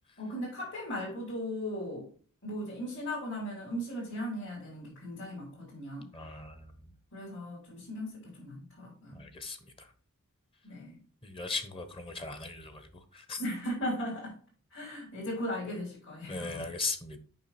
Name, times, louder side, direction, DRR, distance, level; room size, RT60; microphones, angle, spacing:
voice 1, 0.2-2.1 2.4-6.1 7.1-9.3 10.6-11.0 13.4-14.4 14.7-16.7, equal, 60° left, -6 dB, 4.0 m, -37 dB
voice 2, 6.1-6.9 9.1-9.9 11.2-13.4 16.3-17.2, left 3 dB, 25° left, 9 dB, 1.2 m, -38 dB
7.5 x 5.7 x 4.4 m, 0.41 s
head